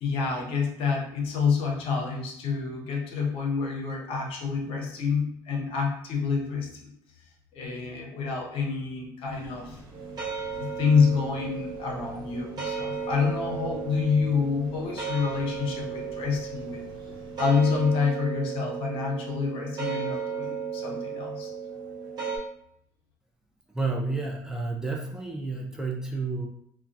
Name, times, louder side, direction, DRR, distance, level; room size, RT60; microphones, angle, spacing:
voice 1, 0.0-6.9 7.5-9.8 10.5-16.8 17.4-21.5, left 5 dB, 65° left, 0 dB, 0.6 m, -28 dB
sound 1, 9.2-17.9, right 1 dB, 55° right, 0.8 m, -48 dB
sound 2, 9.9-22.4, right 6 dB, 40° right, 1.1 m, -35 dB
voice 2, 23.7-26.5, right 3 dB, 5° right, -1 dB, 0.5 m, -30 dB
2.2 x 2.2 x 2.5 m, 0.71 s
hypercardioid pair, 65°, 10 cm